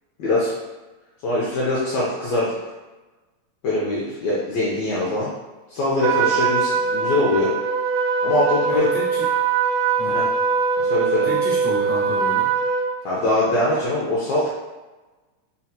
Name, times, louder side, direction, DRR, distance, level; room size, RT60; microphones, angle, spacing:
voice 1, 0.2-0.6 1.2-2.6 3.6-5.3 5.7-7.5 8.2-8.9 10.1-10.2 10.8-11.3 13.0-14.5, left 1 dB, 80° left, -7 dB, 1.6 m, -22 dB
Trumpet, 6.0-12.9, right 5 dB, 90° right, 2.2 m, -22 dB
voice 2, 8.7-9.3 10.0-10.2 11.2-12.5, equal, 55° right, -13 dB, 0.7 m, -30 dB
5.4 x 2.3 x 2.8 m, 1.2 s
omnidirectional pair, 3.9 m